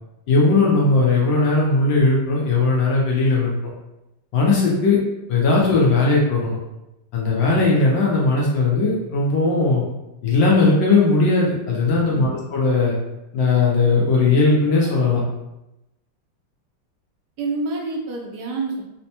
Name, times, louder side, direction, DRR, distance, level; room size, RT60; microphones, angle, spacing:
voice 1, 0.3-3.5 4.3-5.0 5.3-6.6 7.1-9.8 10.2-12.9 13.3-15.2, left 3 dB, 70° left, -3 dB, 1.3 m, -18 dB
voice 2, 17.4-18.8, right 3 dB, 80° right, -1 dB, 0.9 m, -27 dB
4.2 x 2.1 x 2.8 m, 0.92 s
omnidirectional pair, 2.4 m